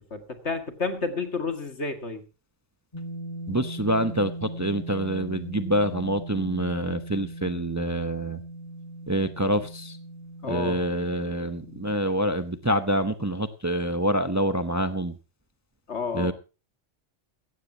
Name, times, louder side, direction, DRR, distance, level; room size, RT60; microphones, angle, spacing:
voice 1, 0.1-2.2 10.4-10.8 15.9-16.3, left 4 dB, 65° left, 7 dB, 2.4 m, -30 dB
sound 1, 2.9-12.0, right 1 dB, 30° left, 2.6 m, -39 dB
voice 2, 3.5-8.4 9.1-10.0 10.4-15.1 16.1-16.3, right 1 dB, 15° right, 11 dB, 0.8 m, -26 dB
17.0 x 14.5 x 2.9 m, 0.31 s
omnidirectional pair, 1.2 m